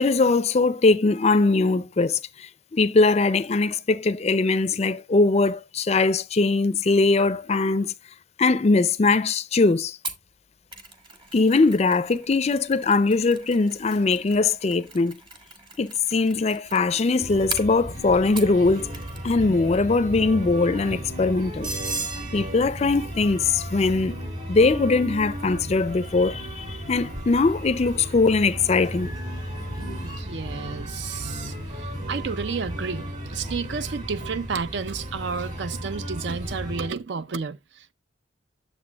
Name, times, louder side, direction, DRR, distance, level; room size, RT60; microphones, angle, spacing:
voice 1, 0.0-2.2 2.7-7.9 8.4-10.0 11.3-15.2 15.8-18.9 19.2-21.7 22.3-24.2 24.5-29.1, left 3 dB, 35° left, 0.4 m, -21 dB
Mechanisms, 10.0-18.6 18.9-19.4 19.6-19.8, right 3 dB, 25° right, 1.2 m, -41 dB
sound 1, 17.2-36.9, right 1 dB, 45° right, 3.6 m, -34 dB
voice 2, 30.0-37.9, right 5 dB, 65° right, 0.5 m, -31 dB
8.8 x 7.2 x 2.3 m
head